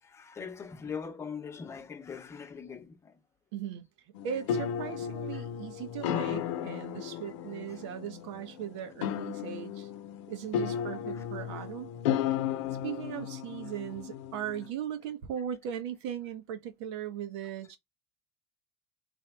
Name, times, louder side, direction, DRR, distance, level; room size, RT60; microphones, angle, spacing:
voice 1, 0.0-3.2 5.3-5.4 11.1-11.2 12.6-12.8, left 6 dB, 20° left, 0.9 m, -42 dB
voice 2, 3.5-3.8 4.2-9.9 10.3-11.9 12.5-12.6 12.8-17.8, right 9 dB, 80° right, 1.2 m, -38 dB
sound 1, 4.1-14.7, left 9 dB, 85° left, 0.7 m, -34 dB
3.4 x 3.3 x 4.7 m
cardioid pair, 155°, 15 cm